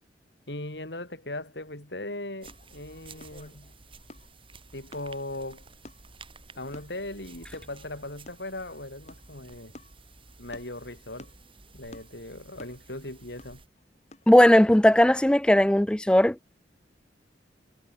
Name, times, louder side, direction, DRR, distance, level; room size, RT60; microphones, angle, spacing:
voice 1, 0.5-3.7 4.7-5.6 6.6-9.7 10.4-11.3 11.7-13.6, left 1 dB, 70° left, 7.1 m, -38 dB
sound 1, 2.4-15.1, left 1 dB, 40° left, 5.8 m, -54 dB
sound 2, 2.4-13.7, right 3 dB, 30° right, 3.9 m, -52 dB
voice 2, 14.3-16.5, left 1 dB, 5° left, 0.4 m, -18 dB
head